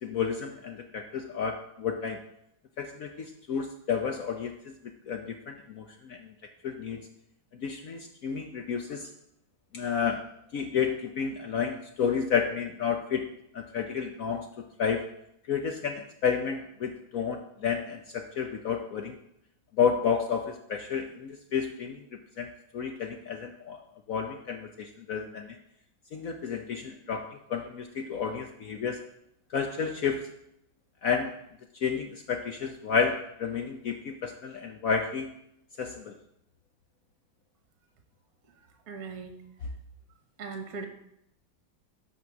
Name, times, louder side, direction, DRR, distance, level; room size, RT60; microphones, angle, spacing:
voice 1, 0.0-2.2 2.8-4.7 5.1-6.2 6.6-7.0 7.6-9.1 9.7-10.2 10.5-13.3 13.5-14.5 14.8-15.1 15.5-19.2 19.8-22.0 22.4-22.5 22.7-23.8 24.1-25.6 26.1-27.2 27.5-29.0 29.5-30.2 31.0-31.3 31.8-35.3 35.8-36.1, left 6 dB, 75° left, 5 dB, 0.8 m, -31 dB
voice 2, 38.9-39.3 40.4-40.9, right 4 dB, 50° right, 5 dB, 1.5 m, -38 dB
12.5 x 4.3 x 5.9 m, 0.78 s
omnidirectional pair, 2.3 m